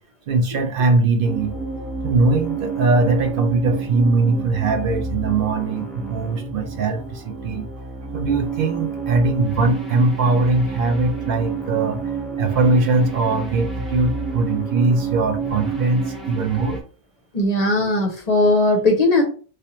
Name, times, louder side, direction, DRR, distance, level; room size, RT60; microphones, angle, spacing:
voice 1, 0.3-1.5 2.0-7.7 8.1-16.8, right 3 dB, 65° right, 6 dB, 0.7 m, -21 dB
sound 1, 1.2-16.8, right 4 dB, ahead, 0.6 m, -29 dB
voice 2, 17.3-19.2, left 2 dB, 45° left, 3 dB, 0.7 m, -18 dB
3.3 x 2.7 x 2.9 m, 0.39 s
omnidirectional pair, 1.1 m